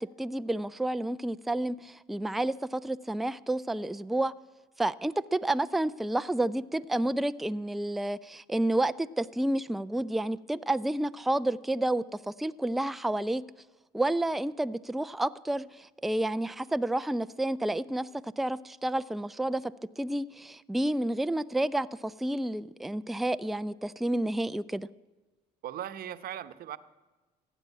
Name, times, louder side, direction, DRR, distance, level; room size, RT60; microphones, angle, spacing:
voice 1, 0.0-4.3 4.8-12.0 12.4-13.4 13.9-24.9, right 1 dB, ahead, 13 dB, 0.4 m, -30 dB
voice 2, 25.6-26.8, right 11 dB, 60° right, 11 dB, 0.9 m, -38 dB
15.5 x 8.9 x 8.2 m, 1.2 s
supercardioid pair, 95°, 18 cm